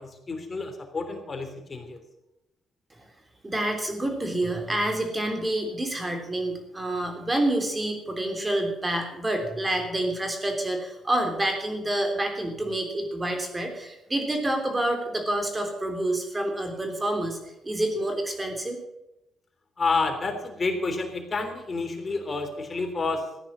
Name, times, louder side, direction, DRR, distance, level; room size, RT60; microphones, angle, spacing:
voice 1, 0.0-2.0 19.8-23.2, left 3 dB, 30° left, 5 dB, 3.3 m, -29 dB
voice 2, 3.4-17.4 17.6-18.8, right 1 dB, 20° right, 4 dB, 3.4 m, -28 dB
14.5 x 9.8 x 7.4 m, 0.89 s
cardioid pair, 90°, 0 cm